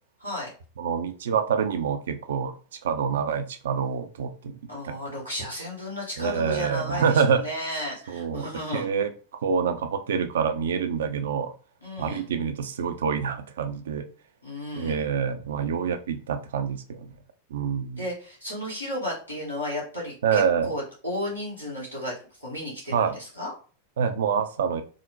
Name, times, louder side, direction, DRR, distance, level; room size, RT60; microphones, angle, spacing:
voice 1, 0.2-0.5 4.7-8.9 11.8-12.3 14.4-15.0 18.0-23.5, left 1 dB, 90° left, -6 dB, 1.5 m, -33 dB
voice 2, 0.8-2.5 2.8-4.6 4.8-4.9 6.2-7.4 8.1-9.1 9.4-11.5 12.0-14.0 14.8-17.1 17.5-18.0 20.2-20.7 22.9-23.1 24.0-24.8, right 6 dB, 60° right, 9 dB, 0.4 m, -26 dB
3.7 x 2.1 x 2.6 m, 0.38 s
figure-of-eight pair, 90°, 0 cm